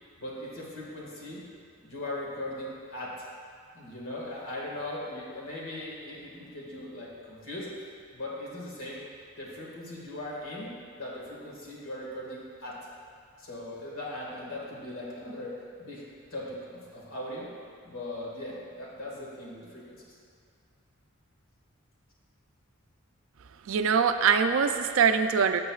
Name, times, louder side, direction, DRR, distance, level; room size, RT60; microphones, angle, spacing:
voice 1, 0.2-1.4 1.8-3.2 3.7-7.7 8.1-9.0 9.4-10.7 11.0-12.8 13.4-16.0 16.3-17.5 17.8-20.2, left 1 dB, 70° left, -4 dB, 1.9 m, -39 dB
voice 2, 23.7-25.6, right 6 dB, 65° right, 8 dB, 0.4 m, -23 dB
12.0 x 6.7 x 2.4 m, 2.4 s
head